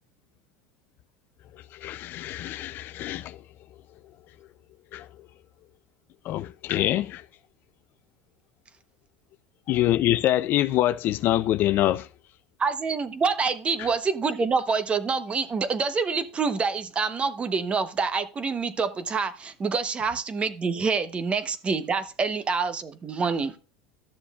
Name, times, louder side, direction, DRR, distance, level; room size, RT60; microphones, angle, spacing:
voice 1, 1.7-3.4 4.9-5.1 6.2-7.2 9.7-12.1 13.8-13.9, left 14 dB, 50° left, 0.4 m, -25 dB
voice 2, 12.6-23.6, right 5 dB, 25° right, 0.9 m, -26 dB
13.0 x 6.9 x 2.4 m
supercardioid pair, 100°, 4 cm